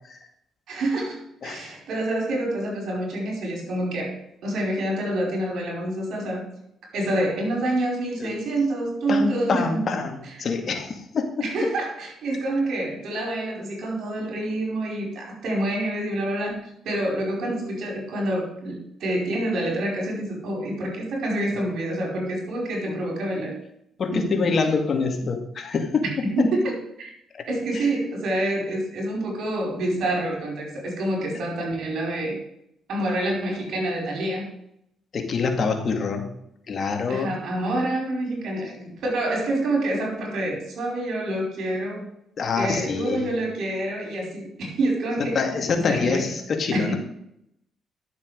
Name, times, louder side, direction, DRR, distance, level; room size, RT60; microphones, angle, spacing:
voice 1, 0.7-6.4 6.8-9.9 10.2-10.3 11.4-16.6 16.8-23.5 24.1-24.3 26.2-27.1 27.5-32.4 32.9-34.5 37.1-38.8 39.0-42.0 42.6-45.5 45.8-46.3 46.7-47.0, right 1 dB, 70° right, 0 dB, 5.1 m, -27 dB
voice 2, 9.1-11.3 22.9-23.0 24.0-26.0 27.4-27.5 27.7-27.9 35.1-36.3 36.7-37.4 38.8-38.9 42.4-43.3 45.2-46.9, left 4 dB, 50° left, 5 dB, 2.0 m, -25 dB
12.0 x 7.3 x 5.1 m, 0.76 s
cardioid pair, 90°, 0 cm